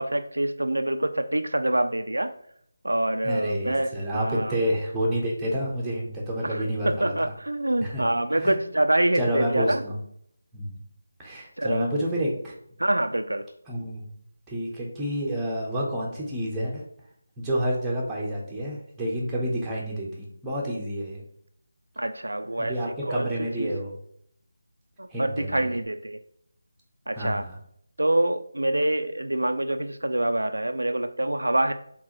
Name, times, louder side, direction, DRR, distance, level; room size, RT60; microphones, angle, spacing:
voice 1, 0.0-2.3 2.8-4.6 6.5-9.8 11.6-11.9 12.8-13.5 22.0-23.7 25.0-26.2 27.1-27.5 28.0-31.7, right 1 dB, 75° right, 8 dB, 0.3 m, -26 dB
voice 2, 3.2-7.3 7.8-8.0 8.4-8.5 9.1-9.9 10.5-10.7 11.2-12.5 13.7-14.0 14.5-16.8 17.4-21.2 22.6-23.9 25.1-25.7 27.1-27.5, equal, 10° right, -4 dB, 0.8 m, -29 dB
4.6 x 3.6 x 2.9 m, 0.69 s
figure-of-eight pair, 155°, 0 cm